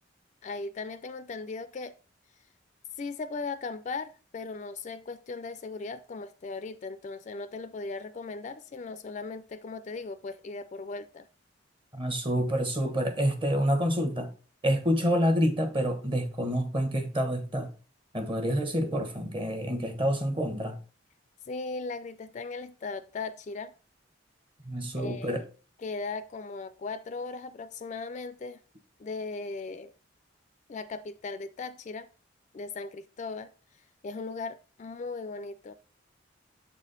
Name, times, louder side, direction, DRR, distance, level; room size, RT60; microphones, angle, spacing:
voice 1, 0.4-1.9 3.0-11.3 21.5-23.7 25.0-25.5 25.8-28.6 29.0-29.9 30.7-32.1 32.5-33.5 34.0-35.7, left 3 dB, 40° left, 0.3 m, -38 dB
voice 2, 11.9-14.3 14.6-17.7 18.1-20.8 24.6-25.4, equal, 25° right, 1.1 m, -28 dB
7.3 x 4.2 x 4.0 m
head